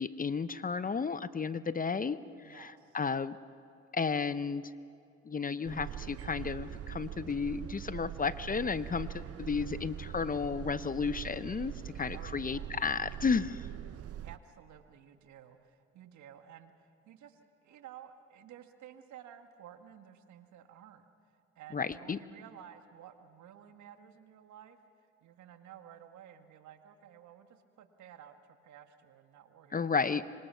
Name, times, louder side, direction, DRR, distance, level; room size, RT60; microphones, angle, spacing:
voice 1, 0.0-3.4 3.9-4.7 5.3-13.7 21.7-22.2 29.7-30.2, left 5 dB, 25° left, 15 dB, 0.8 m, -33 dB
voice 2, 2.4-3.0 12.1-12.7 14.2-24.8 25.2-30.2, right 9 dB, 65° right, 7 dB, 1.8 m, -54 dB
sound 1, 5.6-14.4, right 11 dB, 50° right, 0.8 m, -43 dB
26.0 x 24.5 x 5.8 m, 2.6 s
hypercardioid pair, 60°, 31 cm